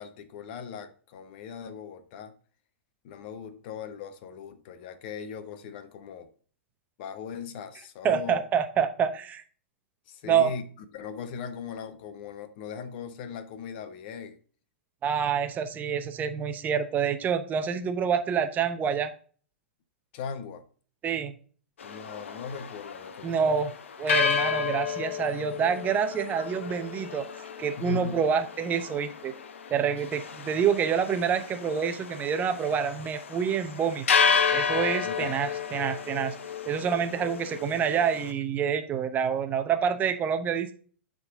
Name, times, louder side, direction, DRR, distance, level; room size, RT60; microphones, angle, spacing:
voice 1, 0.0-2.3 3.0-6.3 7.0-8.4 10.1-10.6 10.9-14.4 20.1-20.6 21.8-23.6 27.8-28.2 35.0-35.3, left 6 dB, 50° left, 1.0 m, -39 dB
voice 2, 8.0-9.4 10.3-10.5 15.0-19.1 21.0-21.3 23.2-23.7 24.0-27.2 27.6-29.3 29.7-34.1 34.5-36.4 36.7-40.7, right 7 dB, 25° right, 0.8 m, -27 dB
sound 1, 21.8-38.3, left 6 dB, 80° left, 0.9 m, -31 dB
10.5 x 3.9 x 3.6 m
hypercardioid pair, 115°, 7 cm